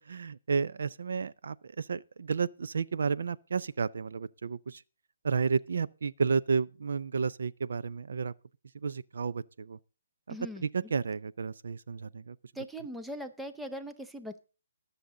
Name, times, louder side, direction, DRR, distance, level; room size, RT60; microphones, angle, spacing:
voice 1, 0.0-4.8 5.2-8.3 8.8-9.8 10.3-12.4, right 5 dB, 70° right, 0.5 m, -32 dB
voice 2, 10.3-10.7 12.6-14.4, equal, ahead, 0.6 m, -40 dB
20.0 x 6.9 x 3.8 m
hypercardioid pair, 170°, 0 cm